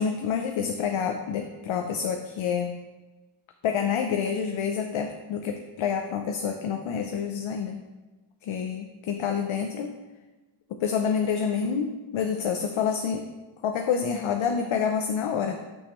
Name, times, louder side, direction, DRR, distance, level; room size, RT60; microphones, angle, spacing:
voice 1, 0.0-2.7 3.6-7.8 8.4-10.0 10.8-13.2 13.6-15.6, left 7 dB, 70° left, 5 dB, 0.6 m, -28 dB
6.4 x 5.9 x 3.0 m, 1.2 s
cardioid pair, 75°, 49 cm